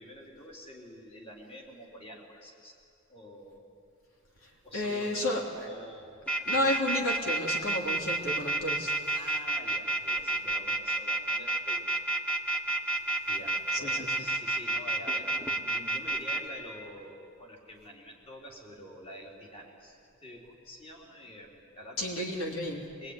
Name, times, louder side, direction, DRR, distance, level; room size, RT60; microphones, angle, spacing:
voice 1, 0.0-2.8 3.1-3.6 4.6-6.2 9.2-11.9 13.3-15.4 15.6-22.3 23.0-23.1, equal, 30° left, -1 dB, 3.7 m, -47 dB
voice 2, 4.4-5.4 6.5-8.9 13.7-14.1 22.0-22.9, left 1 dB, 80° left, 0 dB, 3.4 m, -31 dB
sound 1, 6.3-16.4, right 2 dB, 5° left, 1.6 m, -29 dB
23.5 x 22.5 x 9.7 m, 2.4 s
head